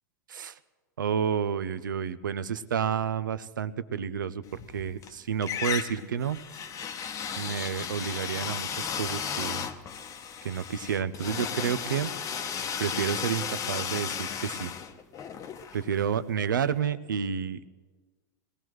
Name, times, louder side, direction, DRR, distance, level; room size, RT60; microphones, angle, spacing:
voice 1, 1.0-6.4 7.4-9.7 10.4-12.1 12.8-14.7 15.7-17.7, right 8 dB, 80° right, 15 dB, 0.6 m, -30 dB
sound 1, 4.5-5.1 5.4-16.3, left 7 dB, 30° left, 0.8 m, -34 dB
21.0 x 16.0 x 3.1 m, 1.4 s
hypercardioid pair, 100°, 10 cm